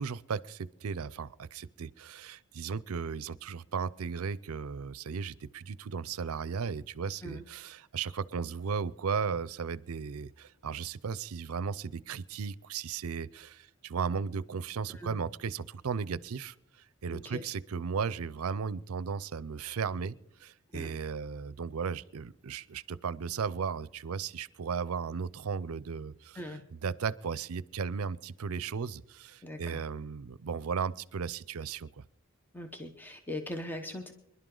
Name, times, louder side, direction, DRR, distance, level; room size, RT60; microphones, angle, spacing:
voice 1, 0.0-16.5 17.0-32.0, right 6 dB, 85° right, 20 dB, 0.5 m, -36 dB
voice 2, 17.1-17.4 20.7-20.9 26.4-26.6 29.4-29.8 32.5-34.1, left 1 dB, 10° left, 5 dB, 0.9 m, -40 dB
26.0 x 11.5 x 3.8 m, 0.82 s
head